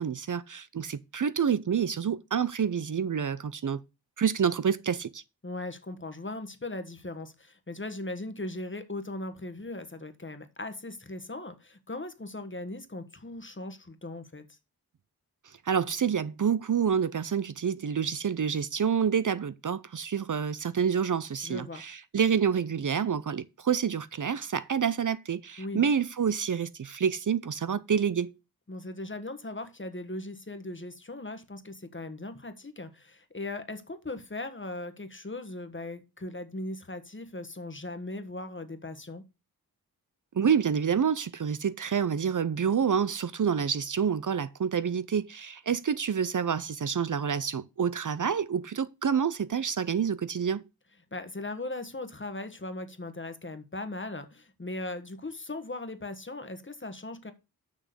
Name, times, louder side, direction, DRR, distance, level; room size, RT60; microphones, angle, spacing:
voice 1, 0.0-3.8 4.2-5.2 15.7-28.3 40.4-50.6, right 7 dB, 55° right, 0.6 m, -28 dB
voice 2, 5.4-14.4 21.4-21.8 25.6-25.8 28.7-39.2 51.1-57.3, left 2 dB, 30° left, 1.4 m, -38 dB
6.5 x 6.2 x 6.7 m
wide cardioid pair, 55°, 37 cm